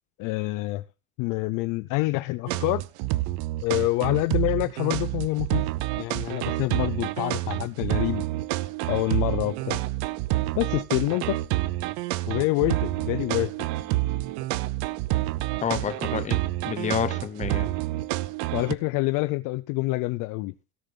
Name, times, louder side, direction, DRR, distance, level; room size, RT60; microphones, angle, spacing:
voice 1, 0.2-0.8 1.2-2.8 3.6-5.7 6.0-8.2 8.9-9.8 10.6-11.4 12.3-13.5 18.5-20.5, left 20 dB, 50° left, 0.5 m, -26 dB
sound 1, 2.5-18.8, right 18 dB, 65° right, 0.7 m, -28 dB
voice 2, 15.6-17.7, left 8 dB, 15° left, 0.8 m, -29 dB
17.0 x 6.8 x 3.8 m
cardioid pair, 160°, 43 cm